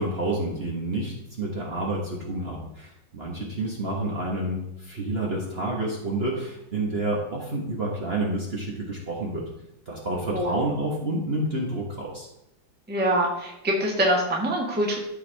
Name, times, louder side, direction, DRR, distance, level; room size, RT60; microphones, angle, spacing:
voice 1, 0.0-9.5 9.9-12.3, right 1 dB, 35° right, -3 dB, 1.3 m, -29 dB
voice 2, 12.9-15.0, right 1 dB, 5° right, -2 dB, 1.3 m, -24 dB
13.5 x 4.6 x 3.4 m, 0.86 s
omnidirectional pair, 2.0 m